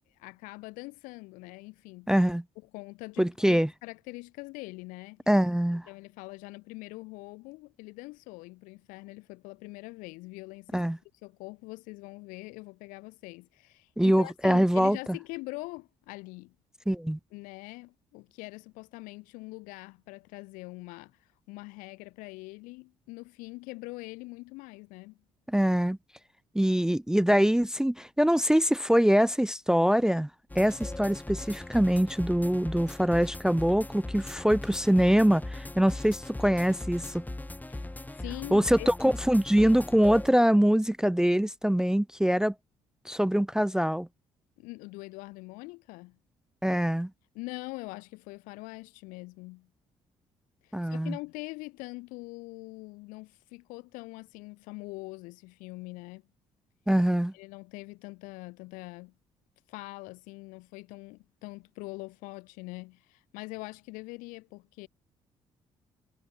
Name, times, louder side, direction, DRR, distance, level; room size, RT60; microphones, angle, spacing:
voice 1, 0.2-2.2 2.7-5.2 5.9-10.8 11.2-16.5 17.3-21.2 21.5-25.2 37.7-37.9 38.2-38.9 44.6-46.2 47.3-49.7 50.6-56.2 57.3-59.1 59.7-64.9, left 24 dB, 80° left, 1.3 m, -43 dB
voice 2, 2.1-2.4 3.2-3.7 5.3-5.8 10.7-11.0 14.0-15.2 16.9-17.2 25.5-26.0 26.5-30.3 30.6-37.2 38.5-42.5 43.1-44.1 46.6-47.1 50.7-51.2 56.9-57.3, equal, 5° right, 0.4 m, -24 dB
sound 1, 30.5-40.3, left 2 dB, 10° left, 2.2 m, -39 dB
hypercardioid pair, 50°, 14 cm